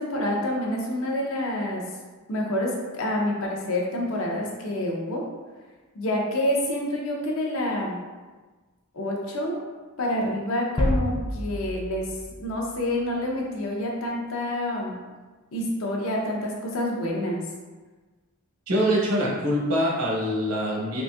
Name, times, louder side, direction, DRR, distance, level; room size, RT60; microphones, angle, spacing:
voice 1, 0.0-1.8 2.3-5.2 5.9-8.0 8.9-9.6 10.0-12.1 12.4-15.0 15.5-17.4, left 1 dB, 65° left, -1 dB, 0.6 m, -27 dB
sound 1, 10.8-13.3, equal, 20° left, 0.3 m, -29 dB
voice 2, 18.7-21.0, equal, 85° right, -4 dB, 0.9 m, -24 dB
3.9 x 2.6 x 2.3 m, 1.3 s
head